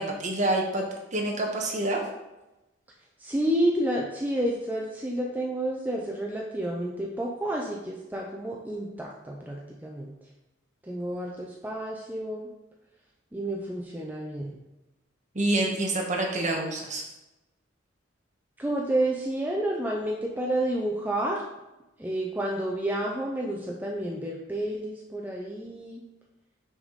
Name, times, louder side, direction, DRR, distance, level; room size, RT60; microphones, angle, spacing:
voice 1, 0.0-2.0 15.3-17.0, right 2 dB, 40° right, 0 dB, 1.2 m, -27 dB
voice 2, 3.2-10.1 10.8-12.5 13.3-14.6 18.6-21.4 22.0-26.0, right 1 dB, 10° right, -2 dB, 0.6 m, -30 dB
6.1 x 4.8 x 4.0 m, 0.99 s
head